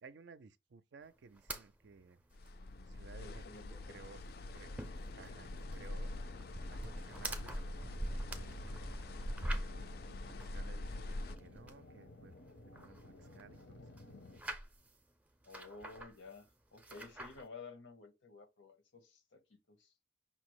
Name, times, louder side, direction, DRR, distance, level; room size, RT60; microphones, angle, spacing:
voice 1, 0.0-2.2 2.9-3.5 3.9-4.2 4.5-4.7 5.1-8.9 9.6-12.4 12.7-14.2, right 5 dB, 65° right, 0.4 m, -58 dB
sound 1, 1.4-1.7 2.0-2.1 2.3-2.5 2.9-3.0 3.3-3.9 4.2-9.9 10.4-11.8 12.3-13.7 14.0-15.0 15.4-16.4 16.8-17.5, right 1 dB, 5° right, 0.5 m, -44 dB
sound 2, 2.3-11.4, left 2 dB, 55° left, 0.4 m, -45 dB
voice 2, 3.2-4.0 4.5-4.8 6.1-6.2 15.5-16.5 16.7-19.9, left 4 dB, 90° left, 1.1 m, -53 dB
sound 3, 4.8-14.4, left 2 dB, 75° left, 0.8 m, -56 dB
5.7 x 2.0 x 4.6 m
head